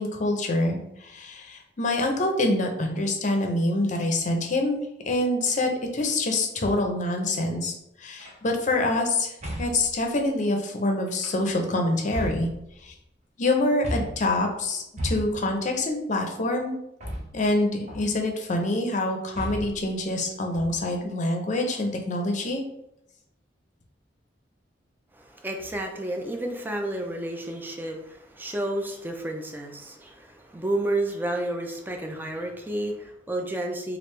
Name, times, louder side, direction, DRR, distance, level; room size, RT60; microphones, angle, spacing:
voice 1, 0.0-4.8 5.0-7.7 8.0-12.5 12.8-12.9 13.4-16.8 17.3-22.6, left 2 dB, 45° left, 3 dB, 0.6 m, -26 dB
sound 1, 8.2-8.5 9.4-9.9 11.1-11.6 12.1-13.0 13.8-14.3 15.0-15.6 17.0-17.6 17.9-18.3 19.3-19.9 20.5-21.0, equal, 40° right, 0.7 m, -34 dB
voice 2, 25.1-34.0, right 1 dB, 10° right, 3 dB, 0.4 m, -31 dB
3.3 x 2.4 x 3.2 m, 0.82 s
head